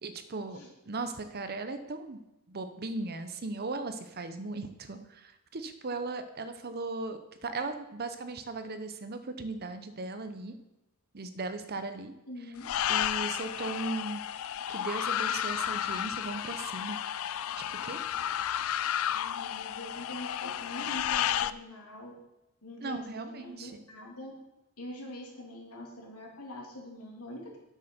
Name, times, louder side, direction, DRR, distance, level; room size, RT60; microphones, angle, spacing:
voice 1, 0.0-0.6 0.9-2.2 2.5-10.6 11.1-12.1 12.9-14.2 14.7-17.0 17.8-18.0 22.8-23.7, right 3 dB, 45° right, 9 dB, 0.8 m, -37 dB
voice 2, 12.3-12.7 19.1-22.1 22.6-24.3 24.8-27.6, left 1 dB, 85° left, 0 dB, 2.6 m, -44 dB
sound 1, 12.6-21.5, left 10 dB, 65° left, 0.4 m, -32 dB
8.5 x 6.4 x 6.0 m, 0.96 s
head